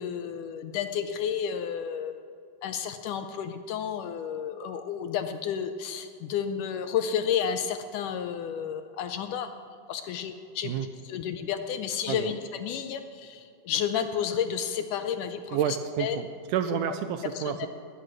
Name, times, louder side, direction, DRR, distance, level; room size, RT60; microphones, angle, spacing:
voice 1, 0.0-2.3 2.6-9.5 9.9-10.7 11.0-16.2 17.4-17.7, left 8 dB, 75° left, 8 dB, 2.0 m, -31 dB
voice 2, 15.5-17.7, right 9 dB, 80° right, 9 dB, 1.9 m, -30 dB
20.5 x 9.8 x 6.1 m, 2.5 s
omnidirectional pair, 4.1 m